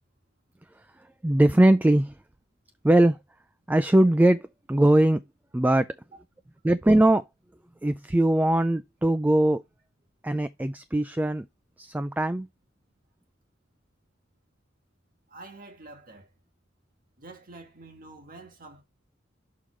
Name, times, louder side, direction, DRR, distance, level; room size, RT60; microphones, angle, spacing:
voice 1, 1.2-2.1 2.8-3.2 3.7-5.2 5.5-5.9 6.6-7.2 7.8-9.6 10.2-11.5 11.8-12.5, right 1 dB, 10° right, 0.3 m, -21 dB
voice 2, 15.3-16.3 17.2-18.8, right 2 dB, 45° right, 1.7 m, -47 dB
6.5 x 3.7 x 4.5 m
head